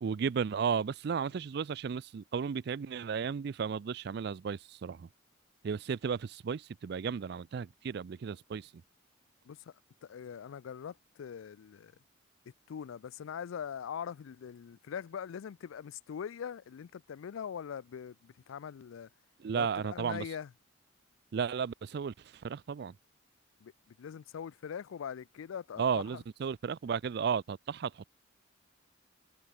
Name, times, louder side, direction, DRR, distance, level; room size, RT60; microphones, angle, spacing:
voice 1, 0.0-5.1 5.6-8.7 19.4-20.2 21.3-22.9 25.8-28.1, right 6 dB, 55° right, 0.3 m, -34 dB
voice 2, 10.0-11.9 12.7-19.1 19.5-20.5 23.6-26.2, left 7 dB, 85° left, 0.4 m, -42 dB
head